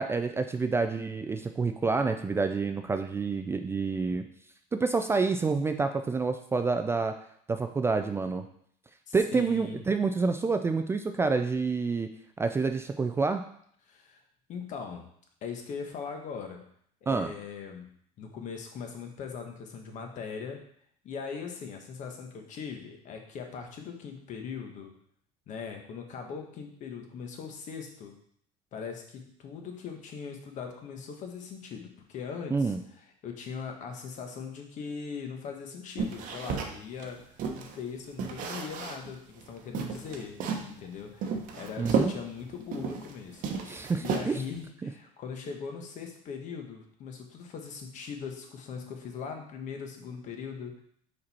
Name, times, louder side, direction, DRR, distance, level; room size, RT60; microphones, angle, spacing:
voice 1, 0.0-4.2 4.7-7.1 7.5-8.4 9.1-12.1 12.4-13.4 17.1-17.3 32.5-32.8 41.8-42.1 43.7-44.4 44.8-44.9, right 4 dB, 15° right, 7 dB, 0.3 m, -28 dB
voice 2, 9.1-9.8 13.9-14.2 14.5-15.0 15.4-16.6 17.0-17.9 18.2-20.6 21.0-24.9 25.5-28.1 28.7-40.4 40.7-50.8, left 6 dB, 50° left, 4 dB, 1.2 m, -40 dB
sound 1, 36.0-37.8 38.2-39.1 39.4-39.5 39.7-40.7 41.2-43.1 43.4-44.6, right 5 dB, 60° right, 0.9 m, -32 dB
5.1 x 4.4 x 4.2 m, 0.65 s
cardioid pair, 120°, 16 cm